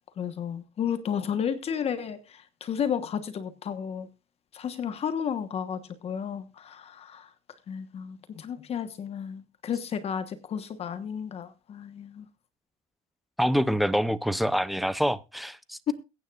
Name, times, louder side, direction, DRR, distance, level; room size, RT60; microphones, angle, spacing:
voice 1, 0.2-4.1 4.5-7.3 7.7-12.3 15.9-16.0, left 8 dB, 40° left, 1.2 m, -32 dB
voice 2, 13.4-15.9, equal, ahead, 0.6 m, -26 dB
22.0 x 9.3 x 2.4 m
cardioid pair, 120°, 15 cm